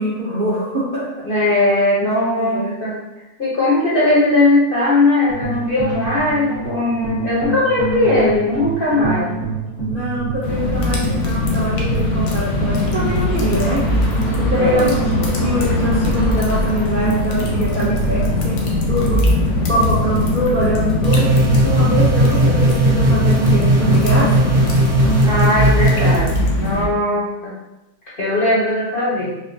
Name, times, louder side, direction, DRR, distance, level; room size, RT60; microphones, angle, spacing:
voice 1, 0.0-1.1 2.0-2.8 9.8-13.8 14.4-24.5, equal, 55° right, -8 dB, 0.5 m, -23 dB
voice 2, 1.2-3.0 3.4-9.3 14.6-14.9 25.2-27.5 28.2-29.3, left 2 dB, 55° left, -8 dB, 0.6 m, -18 dB
sound 1, 5.3-25.2, right 3 dB, 30° right, 1.1 m, -27 dB
sound 2, 10.4-26.9, left 2 dB, 85° left, 1.3 m, -21 dB
sound 3, 21.0-26.2, right 2 dB, 70° right, 1.2 m, -17 dB
4.0 x 2.3 x 2.6 m, 0.98 s
omnidirectional pair, 1.8 m